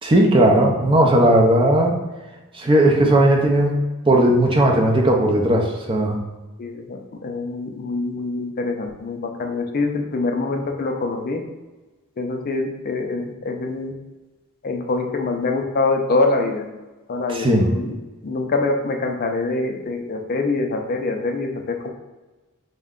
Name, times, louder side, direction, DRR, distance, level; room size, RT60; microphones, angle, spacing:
voice 1, 0.0-1.9 2.5-3.8 4.1-6.2 17.3-17.7, right 1 dB, 25° right, 1 dB, 0.5 m, -16 dB
voice 2, 6.6-11.4 12.2-13.9 14.6-16.7 17.1-18.0 18.2-21.9, left 3 dB, 45° left, 3 dB, 0.4 m, -24 dB
4.4 x 2.1 x 3.6 m, 1.2 s
head